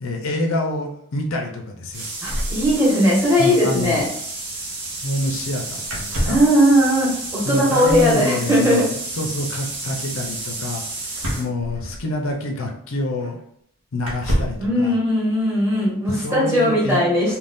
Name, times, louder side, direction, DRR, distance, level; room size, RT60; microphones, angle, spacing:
voice 1, 0.0-2.1 3.4-4.0 5.0-6.4 7.4-8.8 9.1-10.8 11.4-13.4 13.9-14.9 16.1-17.0, left 1 dB, 70° left, 1 dB, 0.6 m, -26 dB
sound 1, 1.9-11.5, right 3 dB, 50° right, 0.7 m, -31 dB
voice 2, 2.2-4.1 6.2-8.9 14.6-17.4, equal, 10° right, -6 dB, 1.0 m, -18 dB
sound 2, 2.2-3.3 3.5-3.6 3.8-4.0 5.8-6.6 7.8-8.2 11.1-12.3 13.2-13.3 14.0-14.7, equal, 85° right, 0.8 m, -27 dB
2.5 x 2.3 x 3.5 m, 0.70 s
head